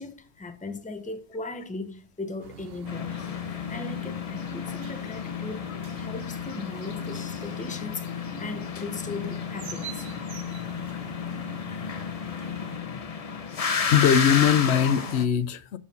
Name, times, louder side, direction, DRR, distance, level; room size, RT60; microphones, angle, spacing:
voice 1, 0.0-5.7 5.9-10.1, left 3 dB, 10° left, 0.7 m, -38 dB
sound 1, 2.4-12.8, right 8 dB, 65° right, 1.0 m, -45 dB
sound 2, 2.9-15.3, left 6 dB, 40° left, 0.7 m, -32 dB
voice 2, 11.7-12.0 13.9-15.8, left 8 dB, 80° left, 0.9 m, -22 dB
6.9 x 5.5 x 5.5 m
omnidirectional pair, 1.1 m